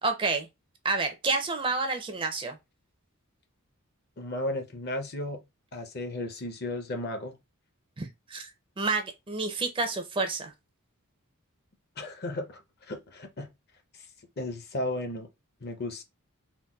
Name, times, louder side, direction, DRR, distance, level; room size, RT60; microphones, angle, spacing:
voice 1, 0.0-0.5 0.8-2.6 8.0-8.5 8.8-10.5, right 3 dB, 25° right, 0.4 m, -29 dB
voice 2, 4.2-5.4 5.7-7.3 12.0-12.6 12.9-13.5 14.4-15.3 15.6-16.0, left 1 dB, 45° left, 0.6 m, -34 dB
3.9 x 2.2 x 2.2 m
head